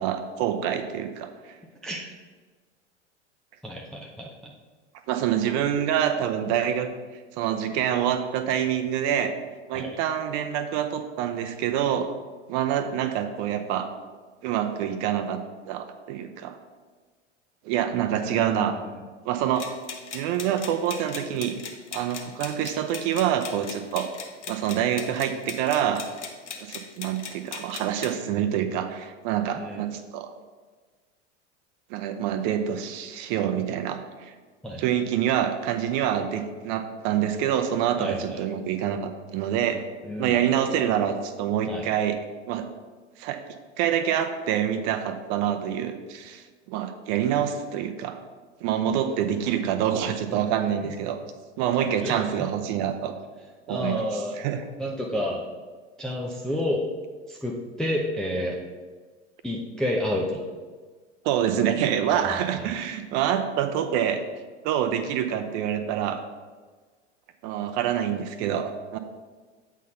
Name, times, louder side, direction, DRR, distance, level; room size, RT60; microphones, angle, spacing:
voice 1, 0.0-1.6 5.1-6.9 7.4-9.3 9.7-12.1 12.5-13.9 14.4-15.4 15.7-16.6 17.6-18.8 19.2-19.7 20.1-21.6 21.9-24.1 24.5-26.0 26.6-30.3 31.9-34.3 34.8-39.8 40.2-42.2 42.5-42.7 43.2-43.4 43.8-48.2 48.6-51.2 51.6-53.1 53.7-54.0 54.4-54.6 61.2-64.2 64.6-66.2 67.4-69.0, right 9 dB, 40° right, 8 dB, 0.7 m, -26 dB
voice 2, 1.8-2.2 3.6-4.6 9.7-10.0 18.1-19.0 29.6-29.8 34.6-34.9 38.0-38.4 40.0-40.4 41.7-41.9 50.3-50.9 52.0-52.5 53.7-54.4 54.8-55.5 56.0-56.8 57.3-58.6 59.4-60.5 62.0-62.7, left 1 dB, ahead, -2 dB, 0.4 m, -31 dB
sound 1, 19.6-28.2, left 6 dB, 70° left, 1.0 m, -39 dB
8.3 x 4.0 x 5.3 m, 1.4 s
figure-of-eight pair, 85°, 37 cm